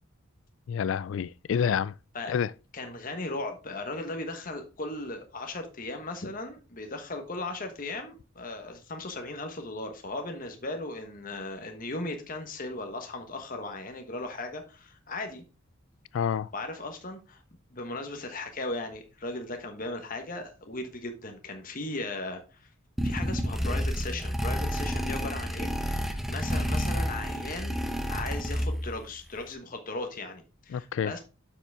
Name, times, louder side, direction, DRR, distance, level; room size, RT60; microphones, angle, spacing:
voice 1, 0.7-1.9 2.3-2.5 16.1-16.5 30.7-31.1, left 7 dB, 65° left, 0.3 m, -28 dB
voice 2, 2.7-15.4 16.5-17.4 17.7-22.7 23.0-31.2, left 2 dB, 45° left, 1.2 m, -37 dB
sound 1, 23.0-29.0, equal, ahead, 0.8 m, -30 dB
7.4 x 6.8 x 3.4 m
head